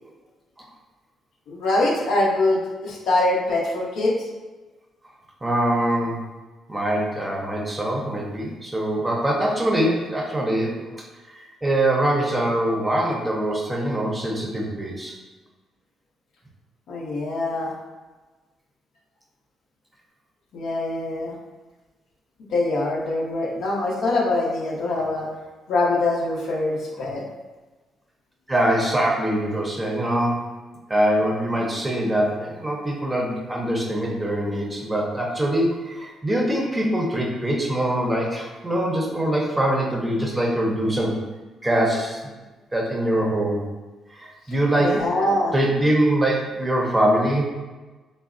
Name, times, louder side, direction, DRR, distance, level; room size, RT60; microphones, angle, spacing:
voice 1, 1.5-4.1 16.9-17.7 20.5-21.4 22.5-25.3 25.7-27.2 44.8-45.5, left 2 dB, 80° left, -3 dB, 0.7 m, -23 dB
voice 2, 5.4-6.2 6.7-15.2 28.5-30.5 30.9-41.2 41.6-42.2 42.7-43.7 44.1-45.0 45.5-47.5, right 1 dB, 15° right, -1 dB, 0.6 m, -23 dB
3.9 x 2.0 x 2.4 m, 1.2 s
cardioid pair, 90°, 0 cm